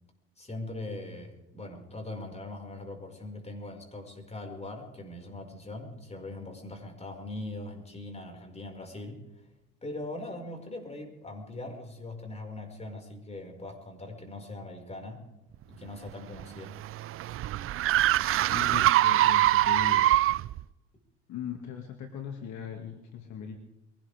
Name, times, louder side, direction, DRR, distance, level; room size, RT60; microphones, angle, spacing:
voice 1, 0.4-9.2 9.8-15.2 15.7-16.7, left 2 dB, 20° left, 2 dB, 5.5 m, -41 dB
sound 1, 16.1-20.6, right 14 dB, 40° right, 0.5 m, -24 dB
voice 2, 18.5-20.1 21.3-23.6, left 7 dB, 55° left, 4 dB, 2.3 m, -39 dB
22.5 x 18.0 x 3.6 m, 1.0 s
hypercardioid pair, 70°, 34 cm